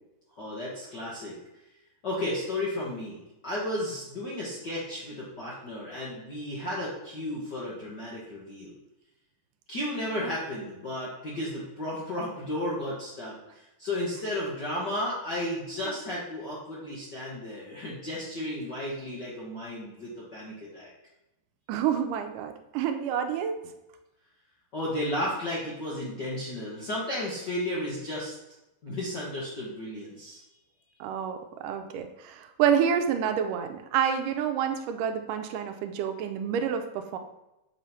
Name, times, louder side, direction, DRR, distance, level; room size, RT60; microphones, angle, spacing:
voice 1, 0.4-1.3 2.0-3.2 3.4-8.7 9.7-20.9 24.7-28.3 28.8-30.4, left 1 dB, 55° left, -7 dB, 1.2 m, -33 dB
voice 2, 21.7-23.6 31.0-37.2, right 8 dB, 80° right, 6 dB, 2.2 m, -28 dB
7.4 x 3.1 x 5.5 m, 0.93 s
omnidirectional pair, 3.7 m